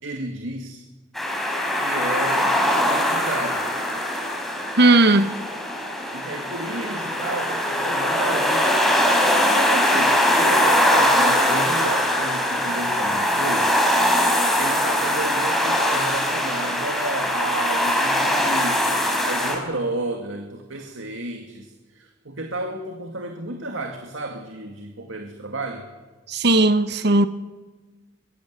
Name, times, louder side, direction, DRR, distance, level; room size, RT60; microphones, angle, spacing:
voice 1, 0.0-0.9 1.8-3.6 6.1-8.7 9.4-13.7 14.5-25.9, right 2 dB, 90° right, 4 dB, 2.2 m, -32 dB
sound 1, 1.2-19.6, equal, ahead, 5.2 m, -21 dB
voice 2, 4.8-5.3 26.3-27.3, right 2 dB, 60° right, 10 dB, 1.2 m, -16 dB
23.0 x 22.0 x 8.3 m, 1.3 s
head